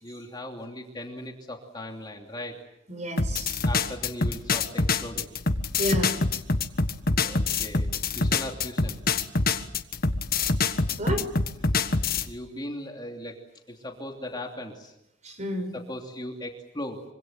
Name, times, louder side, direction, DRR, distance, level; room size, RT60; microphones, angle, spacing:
voice 1, 0.0-2.6 3.6-5.3 7.2-9.0 11.7-13.4 13.7-14.9 15.7-17.0, left 1 dB, 20° left, 2 dB, 3.0 m, -38 dB
voice 2, 2.9-3.6 5.8-6.1 11.0-11.3 15.2-15.7, equal, 35° right, 7 dB, 6.3 m, -31 dB
sound 1, 3.2-12.3, left 3 dB, 50° left, 1.5 m, -25 dB
26.0 x 26.0 x 7.6 m, 0.84 s
head